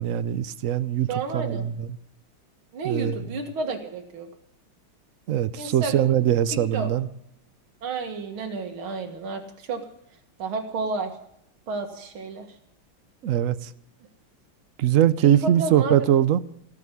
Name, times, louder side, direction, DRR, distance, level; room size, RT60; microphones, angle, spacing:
voice 1, 0.0-1.1 1.3-1.9 2.8-3.2 5.3-7.1 13.2-13.7 14.8-16.4, right 11 dB, 65° right, 0.8 m, -22 dB
voice 2, 1.1-1.7 2.7-4.3 5.6-6.0 6.5-6.9 7.8-9.9 10.4-11.1 11.7-12.5 15.2-16.0, right 3 dB, 85° right, 2.6 m, -31 dB
18.0 x 7.4 x 9.7 m
omnidirectional pair, 2.2 m